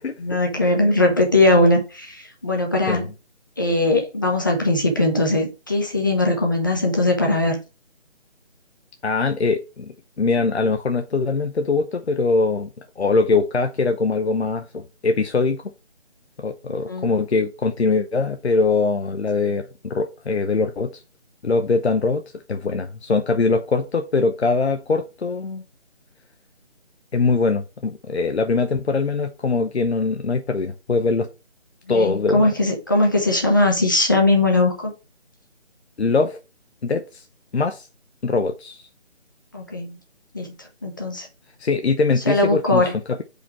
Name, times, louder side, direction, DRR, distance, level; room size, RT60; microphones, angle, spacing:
voice 1, 0.2-3.1 3.6-7.6 16.9-17.1 31.9-34.9 39.5-40.0 40.3-40.5 40.8-41.3 42.3-42.9, left 2 dB, 20° left, 1.0 m, -20 dB
voice 2, 9.0-15.6 16.4-21.0 21.4-22.2 22.5-25.6 27.1-31.3 31.9-32.5 36.0-36.4 36.8-37.2 37.5-37.9 38.2-38.8 41.6-43.2, left 4 dB, 70° left, 0.9 m, -22 dB
5.1 x 4.3 x 4.7 m
figure-of-eight pair, 170°, 34 cm